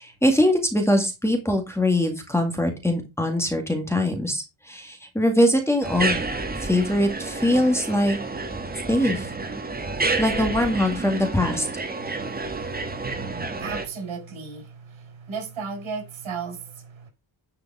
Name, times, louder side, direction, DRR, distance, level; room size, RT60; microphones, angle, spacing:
voice 1, 0.0-6.2 6.6-8.2 8.9-9.3 10.2-11.7, left 1 dB, 5° left, 1.8 m, -22 dB
sound 1, 5.8-13.9, right 3 dB, 20° right, 1.6 m, -29 dB
voice 2, 9.8-10.2 12.0-17.1, right 5 dB, 85° right, 5.5 m, -36 dB
10.5 x 5.1 x 4.7 m
wide cardioid pair, 170°, 46 cm